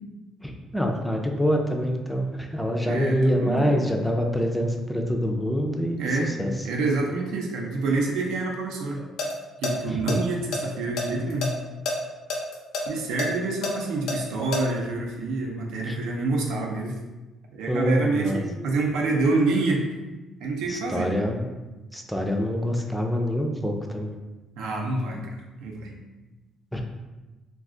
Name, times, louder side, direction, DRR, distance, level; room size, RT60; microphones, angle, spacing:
voice 1, 0.4-6.5 9.9-10.2 15.9-16.0 17.7-18.4 20.7-21.5 21.9-24.2 26.7-26.8, equal, ahead, 2 dB, 0.3 m, -26 dB
voice 2, 2.8-3.8 6.0-6.3 6.6-9.0 9.6-11.5 12.9-17.0 17.5-19.8 20.4-21.2 24.6-26.0, right 3 dB, 90° right, 0 dB, 0.5 m, -27 dB
sound 1, 9.0-9.3 9.6-9.7 10.1-11.5 11.9-12.0 12.3-14.6, left 3 dB, 80° left, 0.6 m, -28 dB
2.4 x 2.3 x 3.6 m, 1.1 s
cardioid pair, 120°, 0 cm